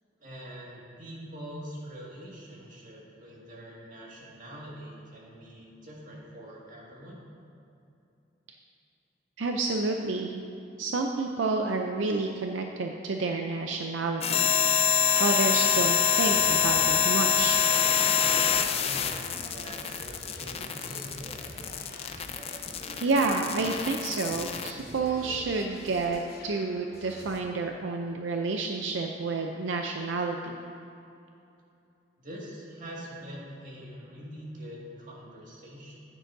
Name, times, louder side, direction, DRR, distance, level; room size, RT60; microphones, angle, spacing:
voice 1, 0.2-7.2 18.8-21.2 32.2-36.0, equal, 45° right, -4 dB, 2.0 m, -44 dB
voice 2, 9.4-10.4 10.8-14.5 15.2-17.6 23.0-30.6, right 3 dB, 80° right, 3 dB, 0.5 m, -29 dB
sound 1, 14.2-24.7, left 8 dB, 35° left, 0.4 m, -26 dB
sound 2, 15.6-27.4, left 2 dB, 55° left, 1.0 m, -48 dB
sound 3, 18.7-25.7, right 1 dB, 30° right, 0.6 m, -49 dB
14.5 x 9.0 x 2.7 m, 2.7 s
head